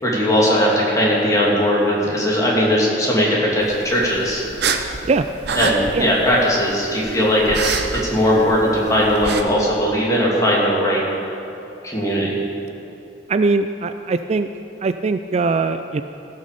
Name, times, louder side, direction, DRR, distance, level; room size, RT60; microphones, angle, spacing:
voice 1, 0.0-4.5 5.5-11.0 11.8-12.3, equal, 20° left, -5 dB, 2.6 m, -18 dB
sound 1, 3.6-9.4, right 5 dB, 65° right, 0.8 m, -28 dB
voice 2, 13.3-14.5 14.8-16.0, right 4 dB, 35° right, 9 dB, 0.3 m, -21 dB
16.0 x 6.5 x 6.8 m, 3.0 s
head